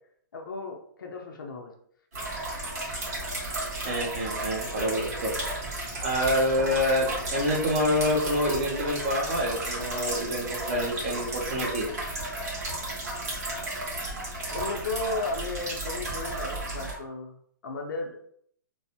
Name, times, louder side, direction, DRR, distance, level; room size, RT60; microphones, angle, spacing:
voice 1, 0.3-1.7 14.5-18.2, left 3 dB, 90° left, 1 dB, 0.6 m, -34 dB
sound 1, 2.1-16.9, right 2 dB, 50° right, 1.3 m, -33 dB
voice 2, 3.8-5.3 6.0-11.9, equal, 25° right, -4 dB, 0.5 m, -27 dB
3.0 x 2.0 x 2.7 m, 0.64 s
hypercardioid pair, 175°, 11 cm